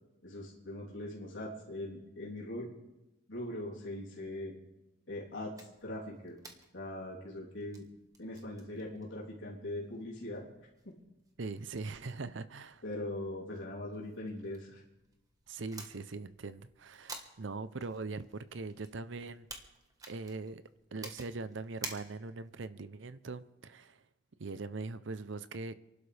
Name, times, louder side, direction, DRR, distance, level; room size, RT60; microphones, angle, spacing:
voice 1, 0.2-2.7 3.3-4.5 5.1-6.4 6.7-7.9 8.2-11.0 12.8-14.8, left 1 dB, 70° left, 3.4 m, -41 dB
sound 1, 5.5-22.5, right 3 dB, 20° right, 1.3 m, -53 dB
voice 2, 11.4-12.8 15.5-19.5 20.1-20.6 20.9-24.0 24.4-25.7, right 3 dB, 65° right, 0.6 m, -41 dB
28.5 x 12.0 x 3.4 m
head